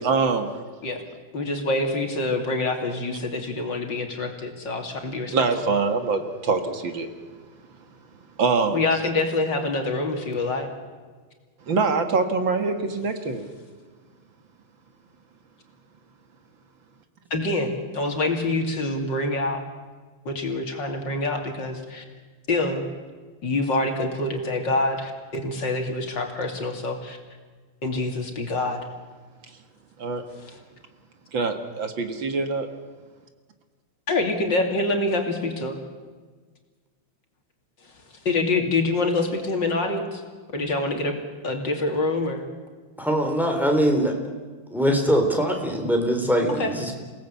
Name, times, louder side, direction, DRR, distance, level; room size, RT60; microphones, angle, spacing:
voice 1, 0.0-0.6 5.3-7.1 8.4-8.8 11.7-13.5 30.0-30.2 31.3-32.7, right 4 dB, 65° right, 7 dB, 2.4 m, -24 dB
voice 2, 1.3-5.3 8.7-10.7 17.3-19.6 20.3-22.0 22.5-22.8 23.4-27.2 27.8-28.8 30.4-30.6 34.1-35.8 38.3-40.2 40.5-41.2 41.4-42.4 46.5-46.7, left 2 dB, 60° left, 3 dB, 3.4 m, -26 dB
voice 3, 43.0-44.1 44.7-46.9, equal, ahead, 2 dB, 3.6 m, -22 dB
28.5 x 18.0 x 8.4 m, 1.5 s
omnidirectional pair, 2.3 m